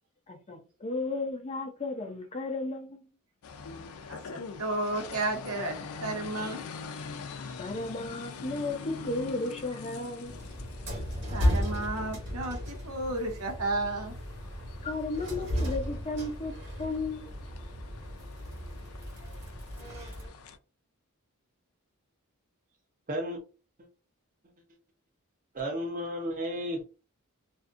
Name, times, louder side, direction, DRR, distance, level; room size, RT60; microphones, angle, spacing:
voice 1, 0.3-3.1 7.6-10.3 14.8-17.3, left 2 dB, 30° left, 0.5 m, -34 dB
sound 1, 3.4-20.6, left 5 dB, 80° left, 0.4 m, -45 dB
voice 2, 4.1-6.6 11.3-14.1, right 2 dB, 90° right, 0.7 m, -33 dB
sound 2, 10.3-20.3, equal, 55° right, 1.3 m, -35 dB
voice 3, 23.1-23.4 23.8-23.9 25.5-26.8, equal, 40° right, 0.7 m, -33 dB
2.5 x 2.3 x 2.4 m
head